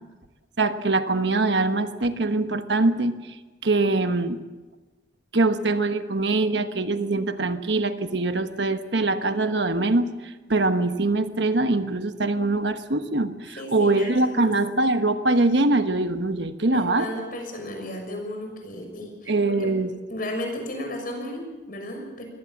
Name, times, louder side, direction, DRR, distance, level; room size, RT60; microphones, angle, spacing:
voice 1, 0.6-3.3 3.6-4.4 5.3-17.1 19.3-19.9, right 2 dB, 70° right, 9 dB, 1.3 m, -23 dB
voice 2, 13.6-14.5 16.7-19.3 19.6-19.7 20.1-22.2, left 1 dB, 50° left, 3 dB, 6.4 m, -34 dB
23.5 x 17.5 x 7.3 m, 1.2 s
head